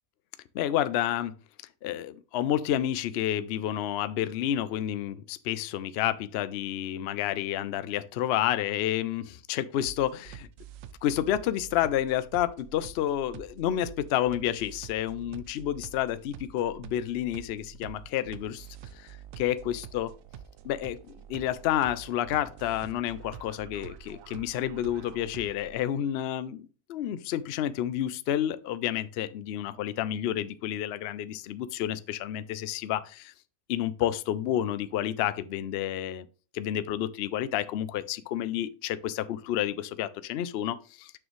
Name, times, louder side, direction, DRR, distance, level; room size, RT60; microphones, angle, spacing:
voice 1, 0.5-1.3 1.8-10.5 11.0-18.7 18.9-20.1 20.7-33.3 33.7-36.2 36.5-41.1, left 11 dB, 75° left, 0.5 m, -30 dB
sound 1, 9.8-25.8, right 9 dB, 70° right, 0.9 m, -47 dB
6.9 x 6.1 x 3.1 m
omnidirectional pair, 1.6 m